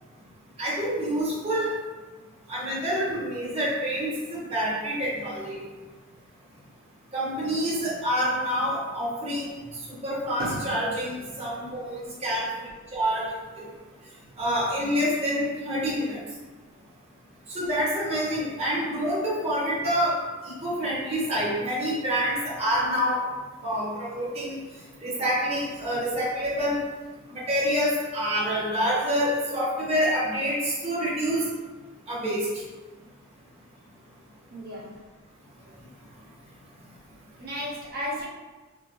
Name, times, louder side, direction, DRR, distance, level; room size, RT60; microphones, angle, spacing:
voice 1, 0.6-1.7 2.5-5.6 7.1-9.5 9.9-13.3 14.4-16.2 17.5-20.2 20.4-23.2 23.6-24.6 25.0-26.8 27.3-31.5 32.1-32.5, equal, 30° right, -7 dB, 1.3 m, -27 dB
voice 2, 10.4-10.8 34.5-34.9 37.4-38.3, equal, 50° right, -7 dB, 1.3 m, -34 dB
5.0 x 2.1 x 3.1 m, 1.3 s
head